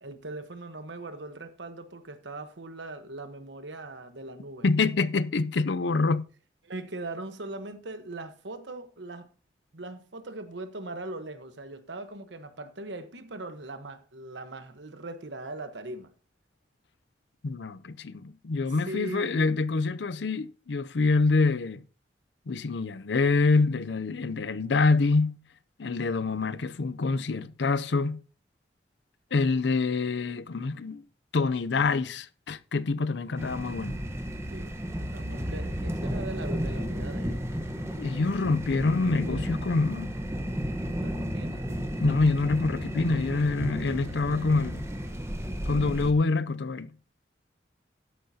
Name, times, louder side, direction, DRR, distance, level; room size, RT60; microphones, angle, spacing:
voice 1, 0.0-4.7 6.6-9.3 9.7-16.1 18.7-19.5 34.5-37.4 38.4-38.5 40.9-41.9 43.3-43.4 43.9-44.6, right 2 dB, 90° right, 1.2 m, -40 dB
voice 2, 4.6-6.2 17.4-21.8 22.5-25.4 25.8-28.2 29.3-31.0 31.3-34.0 38.0-40.1 42.0-44.9 45.7-46.9, left 3 dB, 80° left, 0.5 m, -26 dB
sound 1, 33.4-46.1, equal, 15° right, 1.1 m, -33 dB
13.0 x 10.0 x 2.8 m
head